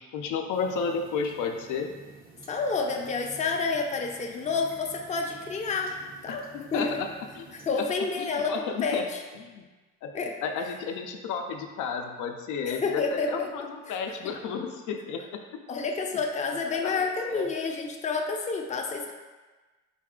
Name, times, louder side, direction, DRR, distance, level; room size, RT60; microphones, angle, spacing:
voice 1, 0.0-1.9 6.5-7.1 7.4-7.8 8.2-9.1 9.3-9.6 10.0-10.1 10.4-15.6 16.7-17.5, left 5 dB, 85° left, 4 dB, 0.4 m, -32 dB
sound 1, 0.5-7.7, right 3 dB, 30° right, 0.5 m, -51 dB
voice 2, 2.5-5.9 6.2-6.4 6.7-7.0 7.5-9.2 10.1-10.3 12.6-13.5 13.9-14.0 15.7-19.1, left 4 dB, 25° left, 2 dB, 0.5 m, -29 dB
3.9 x 2.3 x 3.6 m, 1.3 s
cardioid pair, 90°, 30 cm